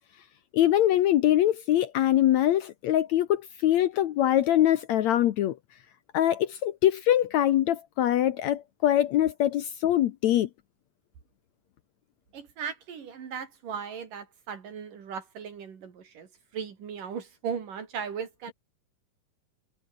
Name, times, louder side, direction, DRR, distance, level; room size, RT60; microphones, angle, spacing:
voice 1, 0.5-5.6 6.1-10.5, left 12 dB, 70° left, 1.9 m, -23 dB
voice 2, 12.3-18.5, right 7 dB, 70° right, 4.5 m, -37 dB
omnidirectional pair, 3.9 m